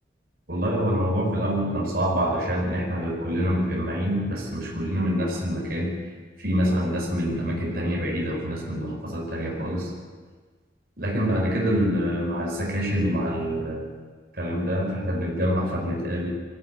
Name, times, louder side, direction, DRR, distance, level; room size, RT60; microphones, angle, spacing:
voice 1, 0.5-6.0 6.4-9.9 11.0-14.0 14.3-16.3, equal, 55° right, -2 dB, 5.1 m, -26 dB
21.0 x 15.0 x 9.2 m, 1.5 s
head